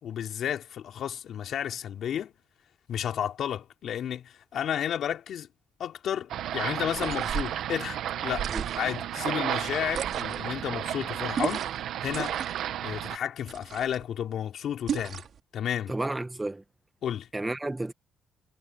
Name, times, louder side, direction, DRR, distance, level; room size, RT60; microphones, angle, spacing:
voice 1, 0.0-2.3 2.9-5.5 5.8-8.5 8.8-11.7 12.0-12.4 12.8-15.2 15.5-15.9 17.0-17.3, left 9 dB, 70° left, 4.2 m, -32 dB
sound 1, 6.3-13.2, right 11 dB, 75° right, 1.3 m, -32 dB
sound 2, 6.9-7.6 8.3-9.0 9.9-10.5 11.3-11.8 12.1-12.7 13.5-14.0 14.9-15.4, right 8 dB, 60° right, 3.6 m, -34 dB
voice 2, 15.9-16.6 17.3-17.9, right 2 dB, 15° right, 1.8 m, -31 dB
cardioid pair, 90°, 0 cm